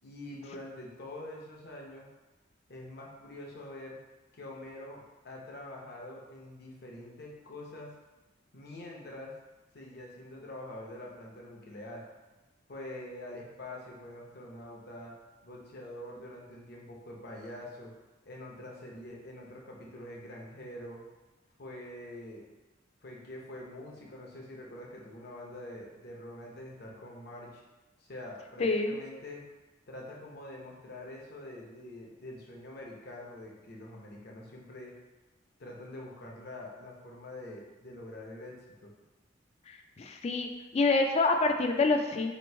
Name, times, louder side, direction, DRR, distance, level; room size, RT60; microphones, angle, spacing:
voice 1, 0.0-2.1 2.7-4.0 4.3-7.9 8.5-9.3 9.7-12.1 12.7-15.1 15.4-17.9 18.2-21.0 21.6-22.5 23.0-27.6 28.0-29.4 29.9-35.0 35.6-38.5 38.8-38.9, left 1 dB, 55° left, -2 dB, 0.8 m, -45 dB
voice 2, 28.6-28.9 40.0-42.3, left 3 dB, 35° left, 5 dB, 0.3 m, -26 dB
3.0 x 2.6 x 4.3 m, 1.1 s
head